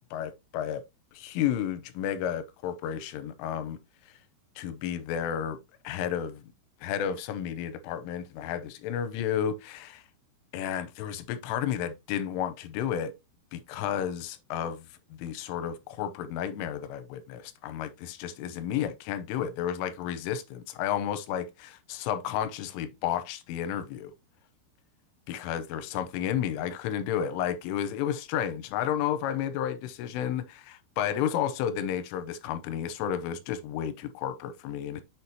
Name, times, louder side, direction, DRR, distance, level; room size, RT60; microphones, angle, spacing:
voice 1, 0.1-0.8 1.1-3.8 4.6-5.6 5.8-6.4 6.8-10.0 10.5-13.1 13.5-14.9 15.1-24.1 25.3-35.0, left 9 dB, 85° left, 3.1 m, -32 dB
6.9 x 6.1 x 2.8 m
omnidirectional pair, 5.9 m